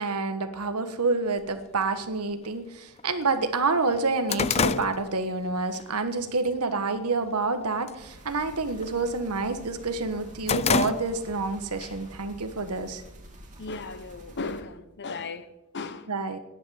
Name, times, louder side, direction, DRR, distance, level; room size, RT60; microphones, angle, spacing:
voice 1, 0.0-13.0 16.1-16.4, right 3 dB, 85° right, 1.4 m, -28 dB
sound 1, 1.4-1.5 2.4-2.5 3.0-3.1 3.4-5.8 6.2-6.5 7.0-7.5 7.7-8.1 8.4-9.6 10.0-11.5 11.8-11.9 12.8-13.7, left 6 dB, 30° left, 0.4 m, -29 dB
sound 2, 8.0-14.6, right 1 dB, 35° right, 2.4 m, -48 dB
voice 2, 13.6-16.1, left 3 dB, 55° left, 1.0 m, -36 dB
10.0 x 9.2 x 10.0 m
head